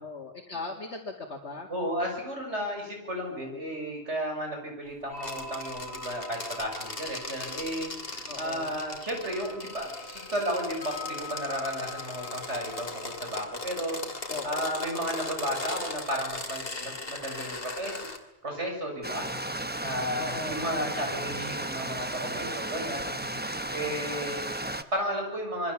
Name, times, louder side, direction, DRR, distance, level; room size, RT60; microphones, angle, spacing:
voice 1, 0.0-1.7 8.3-8.8 14.3-14.5 20.2-20.7, left 3 dB, 75° left, 0 dB, 2.7 m, -38 dB
voice 2, 1.7-18.0 18.4-25.7, equal, 85° right, 2 dB, 7.1 m, -34 dB
sound 1, 5.1-18.3 18.5-18.6 19.6-20.6, left 3 dB, 20° left, 4.7 m, -47 dB
sound 2, 5.2-18.2, left 3 dB, 55° left, 2.8 m, -39 dB
Stream, 19.0-24.8, right 1 dB, 10° right, 1.0 m, -34 dB
26.5 x 23.0 x 7.3 m, 0.82 s
omnidirectional pair, 1.1 m